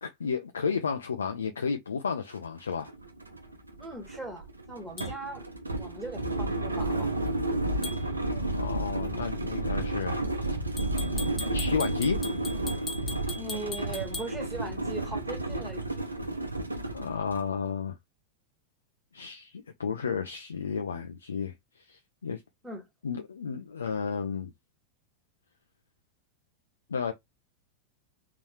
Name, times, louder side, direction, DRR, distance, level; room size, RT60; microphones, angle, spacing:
voice 1, 0.0-2.9 8.3-10.2 11.5-12.2 16.9-18.0 19.1-22.4 23.0-24.5 26.9-27.1, left 6 dB, 70° left, 0.5 m, -32 dB
sound 1, 2.3-2.4 2.7-17.5, right 2 dB, 80° right, 0.8 m, -32 dB
voice 2, 3.8-5.4 5.8-7.1 13.3-15.8 22.6-22.8, right 2 dB, 10° right, 1.4 m, -39 dB
sound 2, 5.0-5.1 7.8-8.0 10.8-14.3, left 2 dB, 15° left, 1.4 m, -39 dB
3.9 x 2.9 x 3.1 m
figure-of-eight pair, 90°, 0 cm